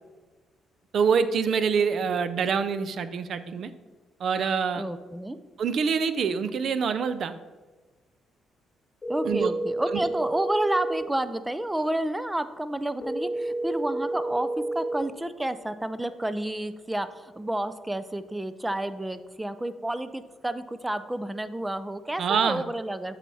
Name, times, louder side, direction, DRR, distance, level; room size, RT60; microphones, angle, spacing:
voice 1, 0.9-3.7 4.2-4.8 5.6-7.3 9.2-9.5 9.9-10.0 22.2-22.6, right 6 dB, 60° right, 12 dB, 0.5 m, -25 dB
voice 2, 4.8-5.4 9.1-23.2, right 1 dB, 10° right, 13 dB, 0.5 m, -30 dB
sound 1, 9.0-11.0 13.0-15.0, right 2 dB, 25° left, 2.0 m, -30 dB
8.2 x 5.8 x 4.1 m, 1.3 s
cardioid pair, 90°, 0 cm